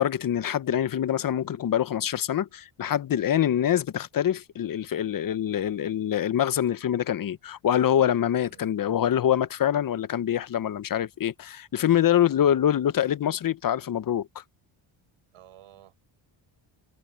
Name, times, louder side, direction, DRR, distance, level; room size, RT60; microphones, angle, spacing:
voice 1, 0.0-14.4, left 10 dB, 45° left, 0.7 m, -25 dB
voice 2, 15.3-16.1, right 12 dB, 85° right, 6.0 m, -54 dB
cardioid pair, 130°, 50 cm